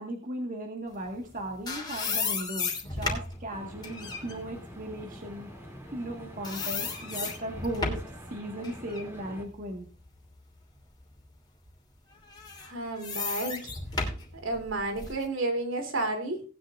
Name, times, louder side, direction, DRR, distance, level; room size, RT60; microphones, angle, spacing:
voice 1, 0.0-5.5 5.9-9.9, right 1 dB, 40° right, 2 dB, 1.7 m, -37 dB
sound 1, 1.2-6.1 6.4-8.2 8.6-10.6 11.1-11.2 12.2-15.2, left 4 dB, 20° left, 3.0 m, -35 dB
sound 2, 3.5-9.4, equal, 10° right, 2.8 m, -46 dB
voice 2, 12.6-13.7 14.0-16.4, right 2 dB, 65° right, 5 dB, 3.1 m, -32 dB
18.5 x 10.5 x 2.5 m, 0.36 s
head